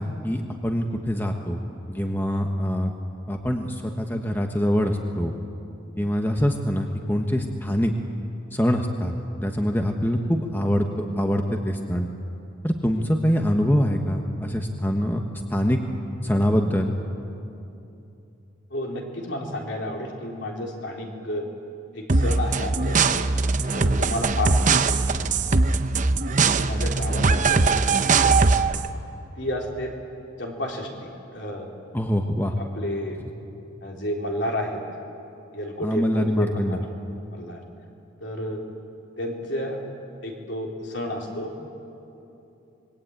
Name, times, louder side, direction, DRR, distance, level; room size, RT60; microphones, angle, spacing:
voice 1, 0.0-2.9 3.3-5.3 6.0-7.9 8.5-12.1 12.6-15.2 15.5-15.8 16.2-16.9 31.9-32.5 35.8-36.8, equal, 10° left, 3 dB, 1.2 m, -24 dB
voice 2, 18.7-21.5 21.9-23.3 23.7-25.0 25.8-26.0 26.6-27.9 28.4-28.7 29.4-29.9 30.4-31.7 32.6-33.2 33.8-34.8 35.5-36.9 37.3-37.6 38.2-38.6 39.2-39.8 40.2-41.5, left 1 dB, 60° left, 0 dB, 4.1 m, -31 dB
sound 1, 22.1-28.9, right 4 dB, 40° right, 0.8 m, -21 dB
26.5 x 22.0 x 9.0 m, 2.8 s
head